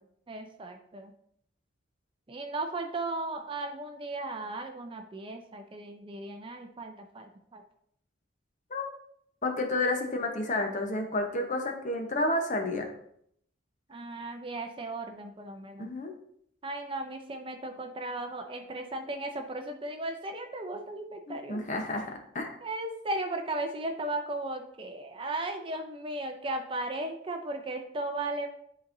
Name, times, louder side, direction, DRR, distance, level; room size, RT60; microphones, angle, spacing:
voice 1, 0.3-1.1 2.3-7.6 13.9-15.9 16.6-21.6 22.6-28.5, right 2 dB, 25° right, 5 dB, 0.5 m, -36 dB
voice 2, 9.4-12.9 15.8-16.1 21.3-22.5, left 2 dB, 40° left, 3 dB, 0.9 m, -30 dB
10.5 x 4.0 x 2.6 m, 0.69 s
head